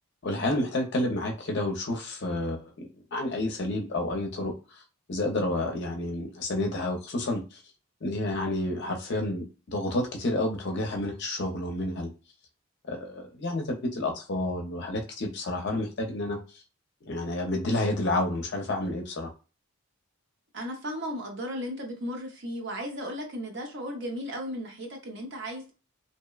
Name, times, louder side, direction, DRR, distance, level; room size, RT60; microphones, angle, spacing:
voice 1, 0.2-2.7 3.1-4.5 5.1-7.6 8.0-12.1 12.9-16.4 17.1-19.3, left 1 dB, 50° left, 2 dB, 0.5 m, -30 dB
voice 2, 20.5-25.7, equal, 50° right, 1 dB, 0.6 m, -35 dB
2.7 x 2.0 x 2.2 m, 0.32 s
head